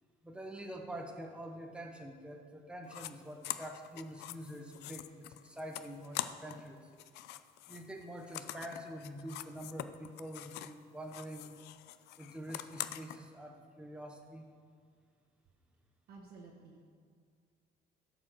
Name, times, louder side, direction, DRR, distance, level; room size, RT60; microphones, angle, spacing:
voice 1, 0.2-6.9 7.7-11.5 12.2-14.4, right 1 dB, 5° right, 2 dB, 1.0 m, -46 dB
sound 1, 2.9-3.1 3.4-6.7 6.9-10.8 11.1-13.2, left 14 dB, 80° left, 0.4 m, -44 dB
voice 2, 16.1-16.8, right 4 dB, 65° right, -2 dB, 1.3 m, -53 dB
11.5 x 4.9 x 6.3 m, 2.1 s
cardioid pair, 110°, 17 cm